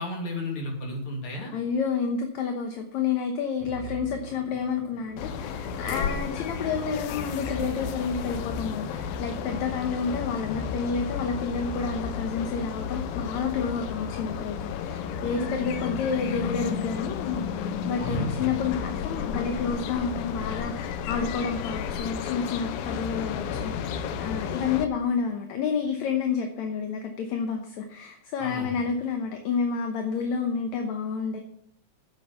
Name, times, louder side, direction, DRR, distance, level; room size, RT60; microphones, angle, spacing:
voice 1, 0.0-1.5 18.0-18.5 28.4-28.8, left 1 dB, 40° left, 1 dB, 3.3 m, -32 dB
voice 2, 1.5-31.4, left 5 dB, 65° left, 4 dB, 2.1 m, -30 dB
Musical instrument, 3.6-12.1, right 3 dB, 45° right, 2.9 m, -47 dB
sound 1, 5.2-24.9, left 7 dB, 90° left, 2.6 m, -32 dB
10.0 x 8.1 x 6.9 m, 0.66 s
omnidirectional pair, 4.0 m